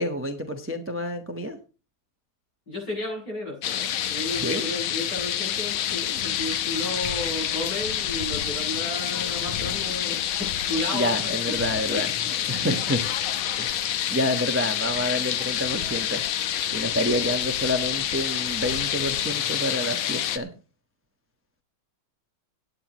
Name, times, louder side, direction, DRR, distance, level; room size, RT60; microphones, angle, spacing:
voice 1, 0.0-1.6 4.4-4.6 10.9-12.1 12.5-13.0 13.6-16.2 16.7-20.5, left 1 dB, 10° right, 5 dB, 0.9 m, -28 dB
voice 2, 2.7-11.4 11.9-12.6 15.7-15.8 17.0-17.1, left 1 dB, 55° left, -2 dB, 7.6 m, -33 dB
sound 1, 3.6-20.4, left 10 dB, 80° left, 1.7 m, -28 dB
17.5 x 9.6 x 3.1 m, 0.32 s
omnidirectional pair, 2.2 m